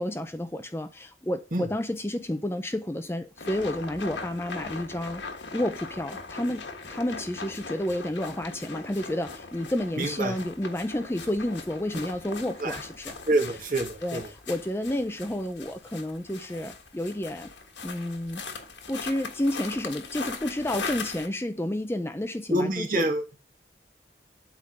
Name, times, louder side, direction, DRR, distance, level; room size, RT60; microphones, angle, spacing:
voice 1, 0.0-5.2 5.5-13.2 14.0-17.5 17.8-18.4 18.9-23.1, left 1 dB, 15° left, 0.5 m, -30 dB
sound 1, 3.4-21.3, left 4 dB, 90° left, 1.5 m, -40 dB
voice 2, 10.0-10.4 12.6-12.8 13.3-14.2 22.5-23.4, right 1 dB, 50° right, 1.8 m, -26 dB
8.5 x 3.7 x 6.5 m
head